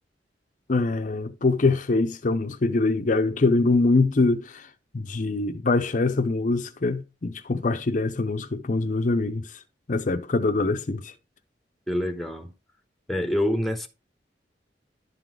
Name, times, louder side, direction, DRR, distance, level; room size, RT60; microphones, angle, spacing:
voice 1, 0.7-4.7 4.9-9.5 9.9-11.1, left 3 dB, 45° left, 0.6 m, -24 dB
voice 2, 11.9-12.5 13.1-13.9, left 1 dB, ahead, 1.0 m, -26 dB
11.5 x 3.8 x 4.6 m
head